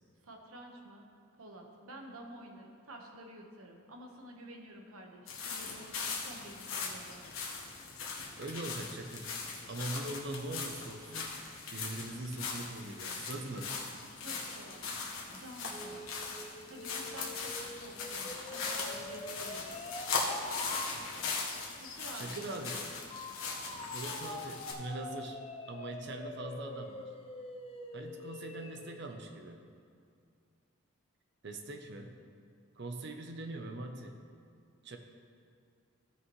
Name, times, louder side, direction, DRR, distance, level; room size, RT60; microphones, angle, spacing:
voice 1, 0.2-1.1 1.4-7.2 14.1-14.8 15.3-16.1 16.7-19.8 21.7-22.5, right 1 dB, 80° right, 1 dB, 1.2 m, -50 dB
sound 1, 5.3-24.7, left 4 dB, 75° left, 1.3 m, -40 dB
voice 2, 8.3-9.3 9.7-11.3 11.7-13.8 22.1-23.1 23.9-27.1 27.9-29.6 31.4-32.2 32.8-34.2 34.8-35.0, right 2 dB, 55° right, 5 dB, 0.7 m, -42 dB
sound 2, 15.7-20.9 23.1-29.0, left 2 dB, 25° left, 0.5 m, -45 dB
15.5 x 5.8 x 3.2 m, 2.3 s
head